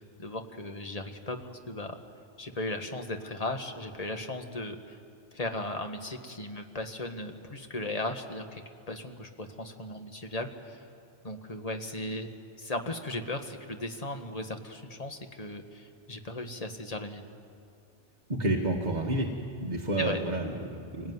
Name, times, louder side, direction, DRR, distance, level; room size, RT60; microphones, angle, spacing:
voice 1, 0.2-2.0 2.4-5.0 5.3-8.6 8.9-10.9 11.2-12.3 12.6-17.3 20.0-20.2, left 2 dB, 30° left, 5 dB, 1.6 m, -36 dB
voice 2, 18.3-19.3 19.6-21.1, right 1 dB, 40° right, -2 dB, 1.8 m, -30 dB
26.0 x 18.5 x 9.6 m, 2.4 s
omnidirectional pair, 1.2 m